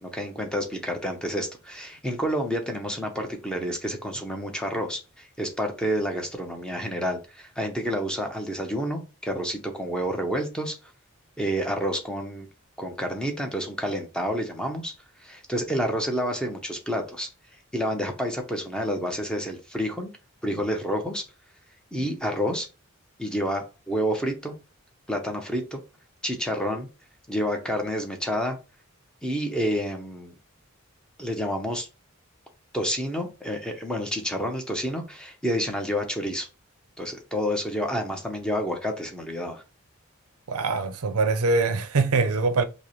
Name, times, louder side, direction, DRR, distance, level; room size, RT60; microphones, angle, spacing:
voice 1, 0.0-10.8 11.4-12.5 12.8-14.9 15.2-17.3 17.7-20.1 20.4-21.2 21.9-22.7 23.2-24.5 25.1-25.8 26.2-26.9 27.3-28.6 29.2-30.3 31.2-31.9 32.7-36.5 37.0-39.6, equal, 5° left, 0.6 m, -29 dB
voice 2, 40.5-42.6, right 3 dB, 85° right, 0.6 m, -23 dB
5.2 x 2.1 x 3.0 m
head